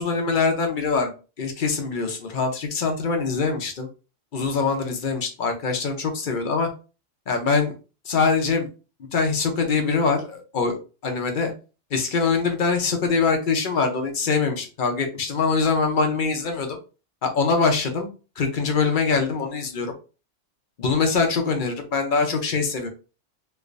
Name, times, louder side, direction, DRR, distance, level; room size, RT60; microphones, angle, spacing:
voice 1, 0.0-3.9 4.3-6.7 7.3-7.7 8.1-8.7 9.1-11.5 11.9-16.8 17.2-18.1 18.4-19.9 20.8-22.9, left 4 dB, 50° left, 4 dB, 0.7 m, -23 dB
3.2 x 3.1 x 2.5 m, 0.33 s
omnidirectional pair, 1.3 m